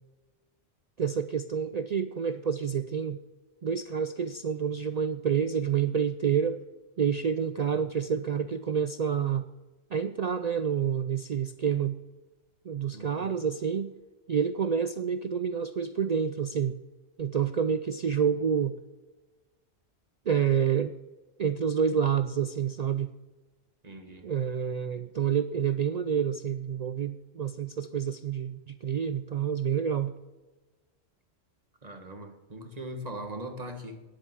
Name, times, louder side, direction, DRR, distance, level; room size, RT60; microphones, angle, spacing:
voice 1, 1.0-3.2 3.6-6.6 7.0-9.5 9.9-12.0 12.7-14.0 14.3-16.8 17.2-18.7 20.3-20.9 21.4-23.1 24.2-30.1, right 7 dB, 65° right, 11 dB, 0.4 m, -28 dB
voice 2, 12.9-13.4 23.8-24.3 31.8-34.0, right 1 dB, 35° right, 5 dB, 1.6 m, -41 dB
10.5 x 8.3 x 7.4 m, 1.2 s
omnidirectional pair, 1.2 m